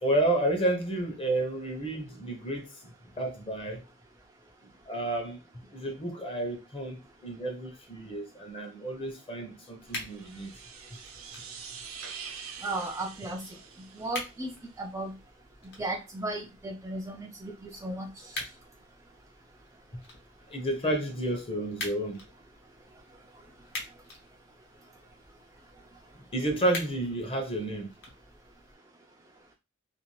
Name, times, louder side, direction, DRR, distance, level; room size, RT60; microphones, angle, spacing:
voice 1, 0.0-3.8 4.9-5.4 5.7-10.5 20.5-22.2 26.1-27.9, right 1 dB, 25° left, 0.7 m, -31 dB
sound 1, 9.8-28.8, left 2 dB, 55° left, 1.0 m, -46 dB
sound 2, 9.9-14.6, right 6 dB, 85° right, 0.6 m, -45 dB
voice 2, 12.6-13.4 13.9-14.5 14.8-15.1 15.8-18.1, right 2 dB, 15° right, 0.3 m, -35 dB
2.5 x 2.4 x 3.0 m
head